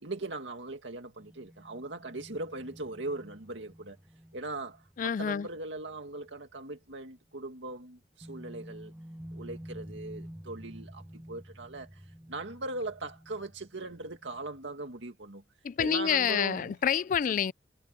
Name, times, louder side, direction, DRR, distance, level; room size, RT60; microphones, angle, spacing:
voice 1, 0.0-4.0 4.3-8.9 9.3-15.4 15.8-16.7 17.3-17.4, right 2 dB, 85° right, 2.2 m, -40 dB
sound 1, 1.2-6.6 6.9-7.0 8.2-14.8, equal, 10° right, 1.1 m, -50 dB
voice 2, 5.0-5.5 15.6-17.5, left 8 dB, 45° left, 0.3 m, -28 dB
head